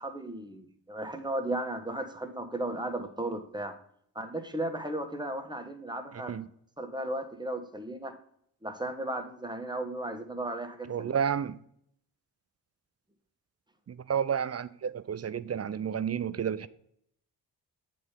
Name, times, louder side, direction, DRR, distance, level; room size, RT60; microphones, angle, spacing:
voice 1, 0.0-3.8 4.1-6.3 6.8-8.1 8.6-11.2, right 1 dB, 10° right, 1.2 m, -35 dB
voice 2, 10.9-11.6 13.9-16.7, right 8 dB, 35° right, 0.5 m, -31 dB
7.5 x 4.2 x 5.2 m
supercardioid pair, 45°, 43 cm